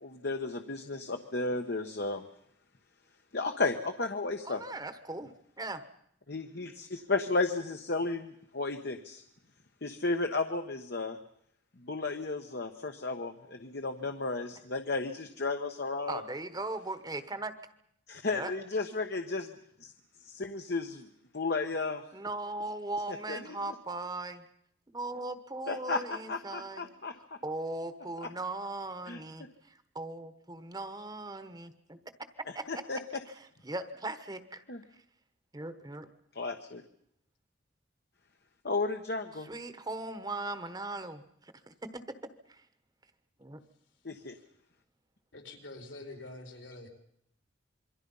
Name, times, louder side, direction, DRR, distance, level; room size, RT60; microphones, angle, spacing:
voice 1, 0.0-2.2 3.3-4.6 6.3-9.2 9.8-11.2 11.8-16.2 18.1-19.5 19.8-19.9 20.3-21.0 21.3-22.0 23.3-23.4 23.7-23.8 25.7-27.1 28.2-28.3 29.1-29.2 32.7-33.0 34.7-34.8 36.3-36.8 38.6-39.5 44.0-44.3, left 3 dB, 55° left, 6 dB, 1.2 m, -33 dB
voice 2, 4.4-5.3 5.6-5.8 16.1-17.5 18.3-18.5 22.1-24.4 24.9-26.9 27.4-29.5 29.9-32.0 32.5-32.6 33.3-34.6 35.5-36.1 39.4-41.2 41.7-42.0 42.5-42.6 43.4-43.6, right 2 dB, 20° right, 11 dB, 1.2 m, -38 dB
voice 3, 45.3-46.9, left 2 dB, 75° left, 4 dB, 4.4 m, -46 dB
27.0 x 23.5 x 5.5 m, 0.73 s
head